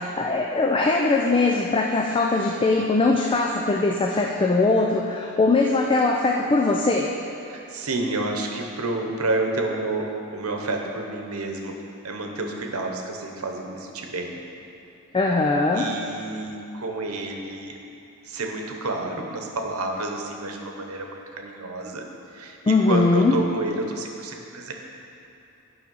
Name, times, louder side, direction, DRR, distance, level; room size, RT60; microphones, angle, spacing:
voice 1, 0.0-7.1 15.1-15.8 22.7-23.4, left 3 dB, 25° left, 1 dB, 0.4 m, -21 dB
voice 2, 7.5-14.4 15.7-17.8 18.2-22.1 22.3-24.7, right 2 dB, 85° right, 2 dB, 1.0 m, -30 dB
9.1 x 5.7 x 5.4 m, 2.8 s
head